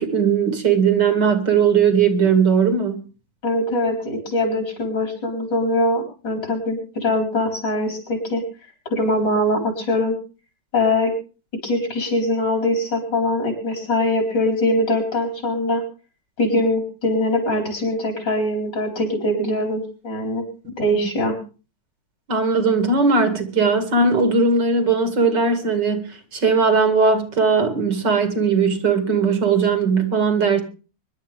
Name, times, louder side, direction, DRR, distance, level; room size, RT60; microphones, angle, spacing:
voice 1, 0.0-3.0 20.6-20.7 22.3-30.6, right 5 dB, 70° right, 2.8 m, -18 dB
voice 2, 3.4-8.4 8.9-10.2 10.7-11.1 11.6-15.8 16.4-20.4 20.8-21.4, left 1 dB, 70° left, 5.2 m, -22 dB
24.5 x 11.5 x 3.4 m
omnidirectional pair, 2.0 m